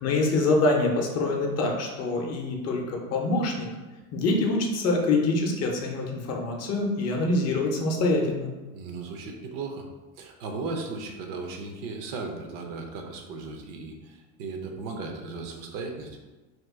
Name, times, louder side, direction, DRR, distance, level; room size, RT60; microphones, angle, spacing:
voice 1, 0.0-3.7 4.1-8.5, left 2 dB, 35° left, 1 dB, 0.5 m, -25 dB
voice 2, 8.7-9.9 10.2-16.2, right 3 dB, 70° right, 3 dB, 0.7 m, -36 dB
2.9 x 2.3 x 3.4 m, 1.2 s
supercardioid pair, 125°, 43 cm